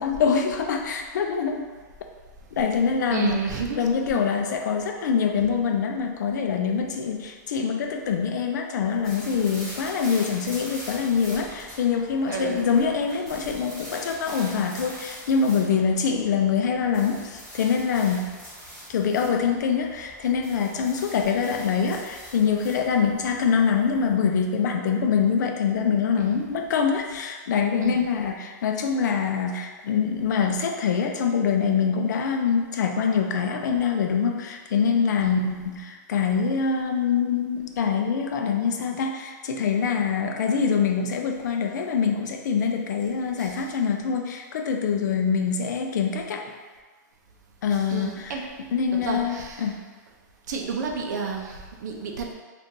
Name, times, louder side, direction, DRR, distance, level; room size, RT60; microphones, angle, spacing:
voice 1, 0.0-1.6 2.5-3.3 3.7-18.3 18.9-46.5 47.6-48.4 48.7-49.8, left 6 dB, 65° left, 4 dB, 0.4 m, -24 dB
voice 2, 3.1-4.2 12.3-12.7 26.2-26.4 27.8-28.1 35.2-35.4 43.4-43.6 47.9-48.4 48.9-49.7 50.5-52.3, right 5 dB, 60° right, 1 dB, 0.5 m, -31 dB
sound 1, 9.0-24.1, equal, ahead, 1.2 m, -43 dB
2.7 x 2.5 x 3.6 m, 1.4 s
supercardioid pair, 175°, 10 cm